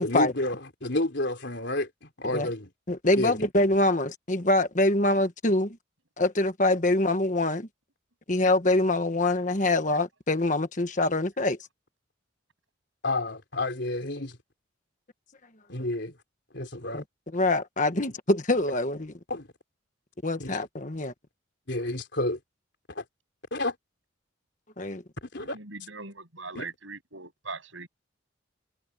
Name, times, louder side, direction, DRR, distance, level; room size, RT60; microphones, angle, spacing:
voice 1, 0.0-2.7 3.1-3.4 13.0-14.4 15.7-16.1 16.5-17.0 19.3-19.5 20.4-20.5 21.7-22.4 22.9-23.0 23.5-23.8 25.2-25.6 26.5-26.7, left 2 dB, 60° left, 4.0 m, -30 dB
voice 2, 2.9-5.8 6.2-7.7 8.3-11.6 16.9-17.0 17.3-19.1 20.2-21.1 24.8-25.0, left 2 dB, 40° left, 1.4 m, -24 dB
voice 3, 25.9-27.9, right 4 dB, 75° right, 7.9 m, -40 dB
head